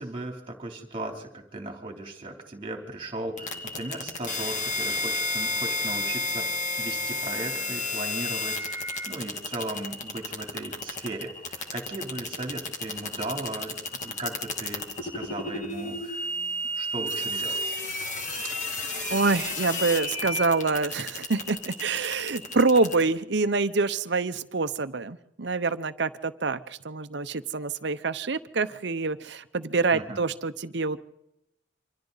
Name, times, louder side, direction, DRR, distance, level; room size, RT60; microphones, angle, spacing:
voice 1, 0.0-16.3 16.7-17.7 29.9-30.2, right 2 dB, 25° right, 3 dB, 3.2 m, -37 dB
sound 1, 3.4-23.0, left 2 dB, 40° left, 2.2 m, -32 dB
voice 2, 19.1-31.0, right 4 dB, 60° right, 12 dB, 0.8 m, -26 dB
28.0 x 25.5 x 4.1 m, 0.84 s
head